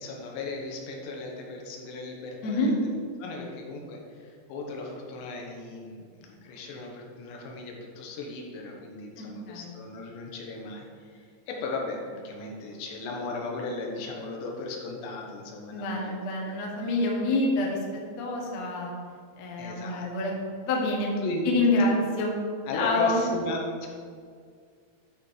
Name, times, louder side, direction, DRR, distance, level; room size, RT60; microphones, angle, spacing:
voice 1, 0.0-2.7 3.2-16.5 19.6-20.1 21.2-21.4 22.7-23.9, left 3 dB, 75° left, 0 dB, 3.1 m, -36 dB
voice 2, 2.4-2.7 9.2-9.7 15.7-17.8 18.2-18.9 19.4-20.4 20.6-21.1 21.4-22.3 22.7-23.2, left 2 dB, 90° left, -2 dB, 1.5 m, -27 dB
11.0 x 4.4 x 4.8 m, 2.1 s
omnidirectional pair, 5.4 m